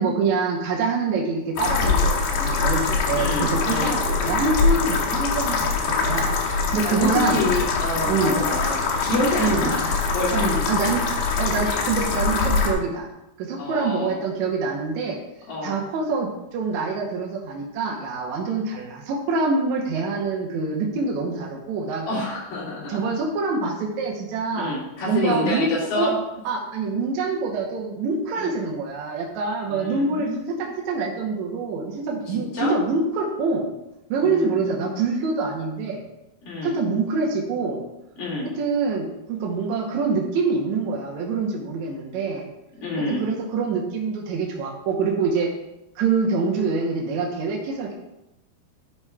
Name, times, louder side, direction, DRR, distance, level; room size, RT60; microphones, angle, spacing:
voice 1, 0.0-3.3 3.7-5.7 6.0-7.5 8.1-8.4 9.4-9.7 10.3-11.0 11.4-13.1 13.4-15.2 15.6-22.1 22.9-24.8 25.0-25.7 25.9-26.1 26.4-33.7 34.1-36.0 36.6-37.8 38.6-42.5 43.1-45.5 45.9-47.9, right 4 dB, 70° right, -1 dB, 1.8 m, -25 dB
sound 1, 1.6-12.7, left 4 dB, 80° left, 3.1 m, -23 dB
voice 2, 3.1-4.0 6.8-11.0 11.6-11.8 13.6-14.2 15.5-15.8 22.1-23.1 24.6-26.2 28.3-28.5 29.7-30.7 32.3-32.8 34.3-34.9 36.4-36.8 38.2-38.5 42.8-43.2, left 2 dB, 65° left, -7 dB, 3.8 m, -28 dB
11.5 x 5.7 x 2.4 m, 0.92 s
omnidirectional pair, 4.5 m